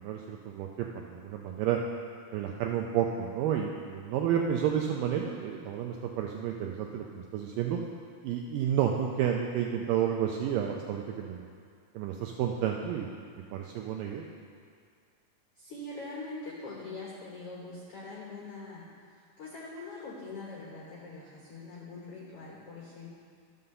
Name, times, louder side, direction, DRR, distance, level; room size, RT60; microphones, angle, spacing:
voice 1, 0.0-1.8 2.3-7.8 8.2-11.4 12.0-13.2 13.5-14.3, right 9 dB, 80° right, 1 dB, 2.0 m, -31 dB
voice 2, 15.5-23.1, left 3 dB, 70° left, -4 dB, 1.4 m, -43 dB
12.5 x 5.6 x 6.7 m, 2.2 s
omnidirectional pair, 4.4 m